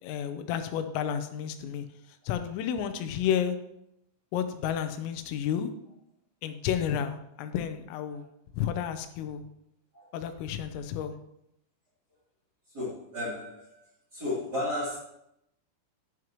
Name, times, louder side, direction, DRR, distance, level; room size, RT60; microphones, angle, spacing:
voice 1, 0.0-1.9 2.3-3.6 4.3-5.7 6.4-8.3 8.5-9.5 10.1-11.1, left 9 dB, 90° left, 8 dB, 3.5 m, -31 dB
voice 2, 12.7-13.8 14.1-15.0, left 1 dB, 25° right, -7 dB, 3.0 m, -33 dB
11.0 x 11.0 x 3.1 m, 0.80 s
omnidirectional pair, 5.8 m